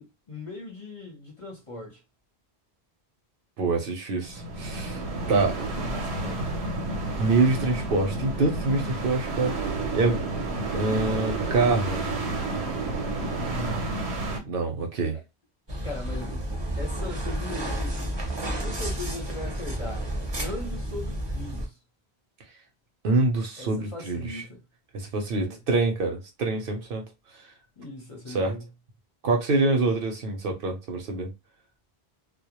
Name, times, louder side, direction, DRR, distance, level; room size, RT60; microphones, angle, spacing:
voice 1, 0.0-2.0 5.5-6.5 13.5-13.9 15.1-15.2 15.8-16.5 16.8-18.3 18.6-20.1 20.4-21.8 23.6-24.6 25.3-25.6 27.8-28.6, left 2 dB, 35° left, 0.7 m, -39 dB
voice 2, 3.6-5.0 5.3-5.6 7.2-9.6 9.9-10.2 10.7-12.1 14.5-15.2 23.0-24.4 24.9-27.0 28.3-28.6 29.2-31.3, right 3 dB, 65° right, 0.8 m, -25 dB
sound 1, 4.2-14.4, right 2 dB, 90° right, 0.9 m, -30 dB
sound 2, 15.7-21.7, right 1 dB, 30° right, 0.5 m, -31 dB
2.1 x 2.1 x 2.9 m
omnidirectional pair, 1.1 m